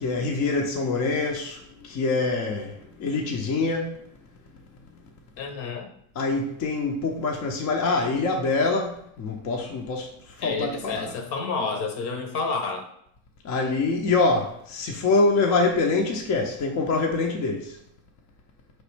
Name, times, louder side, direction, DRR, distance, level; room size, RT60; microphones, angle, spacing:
voice 1, 0.0-4.0 6.1-11.1 13.4-17.8, left 3 dB, 40° left, 0.6 m, -25 dB
voice 2, 5.4-5.9 10.4-12.9, left 4 dB, 65° left, 1.0 m, -29 dB
4.1 x 3.1 x 3.3 m
supercardioid pair, 95°, 42 cm